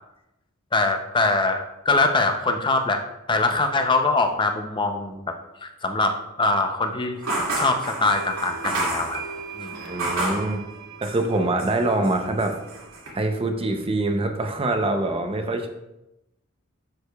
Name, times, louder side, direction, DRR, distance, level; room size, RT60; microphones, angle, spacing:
voice 1, 0.7-3.0 3.3-5.3 5.6-7.2 7.6-9.2 9.6-9.8, left 3 dB, 25° left, 5 dB, 0.6 m, -23 dB
sound 1, 7.2-10.5 11.0-11.8 12.0-13.1, right 1 dB, 85° right, 2.3 m, -29 dB
sound 2, 8.1-13.4, right 6 dB, 50° right, 1.0 m, -41 dB
voice 2, 9.9-10.7 11.0-12.6 13.1-15.7, right 2 dB, 25° right, 5 dB, 0.7 m, -24 dB
11.0 x 4.9 x 2.3 m, 0.92 s
head